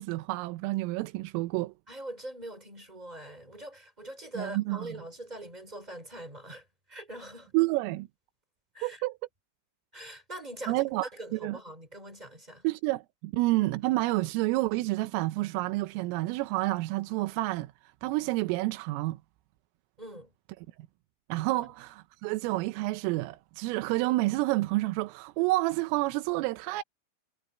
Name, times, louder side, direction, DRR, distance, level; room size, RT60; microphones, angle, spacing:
voice 1, 0.0-1.7 4.4-4.9 7.5-8.1 8.8-9.2 10.7-11.1 11.3-11.6 12.6-17.7 18.0-19.2 21.3-26.8, right 20 dB, 90° right, 3.5 m, -29 dB
voice 2, 1.9-7.5 8.7-9.0 9.9-12.6 20.0-20.3 21.5-21.6, right 1 dB, 10° right, 3.4 m, -43 dB
omnidirectional pair, 5.8 m